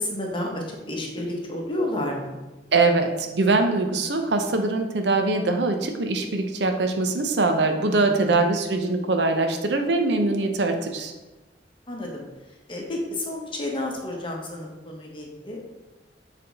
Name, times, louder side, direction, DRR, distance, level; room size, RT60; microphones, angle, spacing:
voice 1, 0.0-2.4 8.0-8.4 11.9-12.2 12.7-15.7, left 1 dB, 30° left, 0 dB, 1.0 m, -31 dB
voice 2, 2.7-11.1, right 3 dB, 70° right, 5 dB, 0.7 m, -22 dB
6.7 x 3.5 x 4.1 m, 1.1 s
head